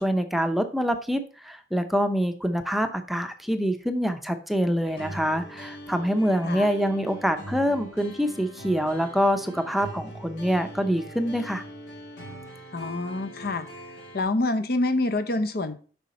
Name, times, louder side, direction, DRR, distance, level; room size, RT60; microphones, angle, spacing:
voice 1, 0.0-11.6, equal, ahead, 7 dB, 0.6 m, -25 dB
sound 1, 4.8-14.2, equal, 85° left, 2.8 m, -42 dB
voice 2, 12.7-13.7 14.1-15.8, left 2 dB, 60° left, 10 dB, 0.8 m, -26 dB
8.0 x 5.7 x 4.2 m, 0.39 s
head